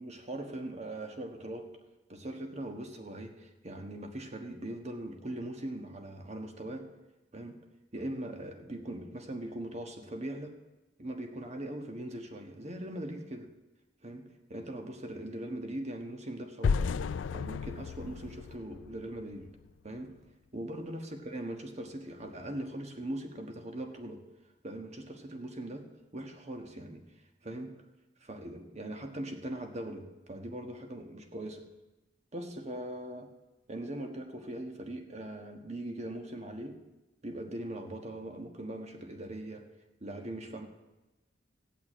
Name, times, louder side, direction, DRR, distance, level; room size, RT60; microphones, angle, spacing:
voice 1, 0.0-1.7 2.1-6.9 7.3-7.6 7.9-10.6 11.0-13.5 14.0-16.9 17.3-19.5 19.8-20.1 20.5-24.2 24.6-25.9 26.1-27.0 27.4-27.8 28.2-31.6 32.3-33.3 33.7-36.8 37.2-39.7 40.0-40.7, right 1 dB, 35° right, 4 dB, 1.4 m, -40 dB
sound 1, 16.6-19.6, left 5 dB, 90° left, 0.4 m, -33 dB
15.5 x 5.9 x 8.8 m, 1.0 s
head